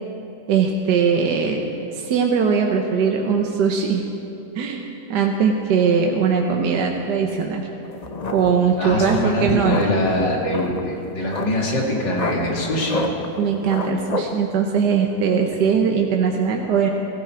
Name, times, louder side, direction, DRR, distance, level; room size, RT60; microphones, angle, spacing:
voice 1, 0.5-1.6 1.9-4.1 4.5-7.6 8.3-9.9 13.4-16.9, right 6 dB, 70° right, 2 dB, 1.5 m, -20 dB
sound 1, 7.8-14.4, left 3 dB, 35° left, 0.7 m, -30 dB
voice 2, 8.8-13.1, left 1 dB, 80° left, -2 dB, 3.1 m, -23 dB
21.5 x 14.5 x 4.5 m, 2.8 s
omnidirectional pair, 1.9 m